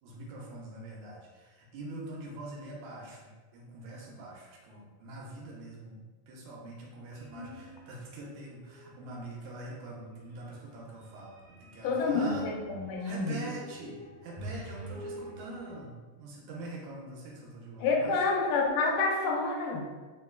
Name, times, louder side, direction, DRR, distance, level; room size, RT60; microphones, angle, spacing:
voice 1, 0.0-12.5 13.0-18.2, right 2 dB, 80° right, -2 dB, 2.0 m, -44 dB
sound 1, 7.1-8.1 8.5-9.1 9.8-15.8, right 1 dB, 40° right, 1.2 m, -47 dB
voice 2, 11.8-13.4 17.8-19.9, left 3 dB, 85° left, 0 dB, 2.0 m, -28 dB
4.6 x 2.2 x 2.3 m, 1.3 s
omnidirectional pair, 3.4 m